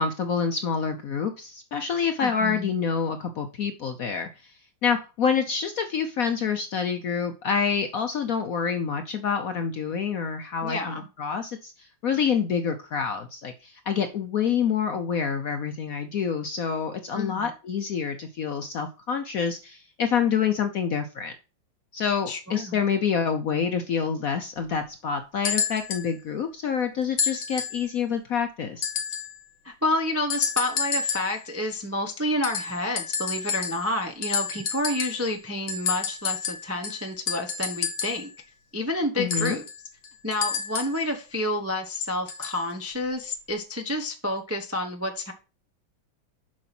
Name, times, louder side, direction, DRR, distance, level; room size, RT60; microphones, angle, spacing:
voice 1, 0.0-4.5 4.8-21.3 21.9-28.9 39.2-39.6, left 6 dB, 65° left, 7 dB, 0.9 m, -27 dB
voice 2, 2.2-2.7 10.6-11.1 17.1-17.5 22.3-22.8 29.6-38.3 38.7-39.7 40.2-45.3, left 1 dB, 20° right, 4 dB, 0.3 m, -29 dB
sound 1, 25.4-26.1 27.2-27.9 28.8-29.4 30.3-31.4 32.4-34.0 34.2-35.3 35.7-38.3 39.3-41.0 42.3-42.6 43.5-43.6, left 6 dB, 85° left, 2.1 m, -30 dB
7.6 x 5.3 x 5.9 m, 0.32 s
omnidirectional pair, 2.2 m